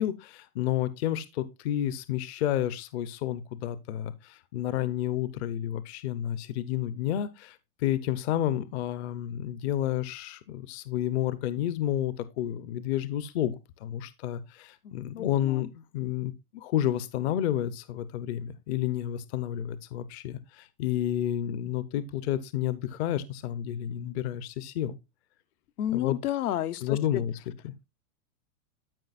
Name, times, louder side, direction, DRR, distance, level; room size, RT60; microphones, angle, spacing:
voice 1, 0.0-13.6 13.8-25.0 25.9-26.2 26.8-27.4 27.6-27.8, left 12 dB, 45° left, 0.7 m, -30 dB
voice 2, 14.8-15.6 25.8-27.2, left 12 dB, 75° left, 0.9 m, -31 dB
12.0 x 5.3 x 2.4 m
supercardioid pair, 150°, 45 cm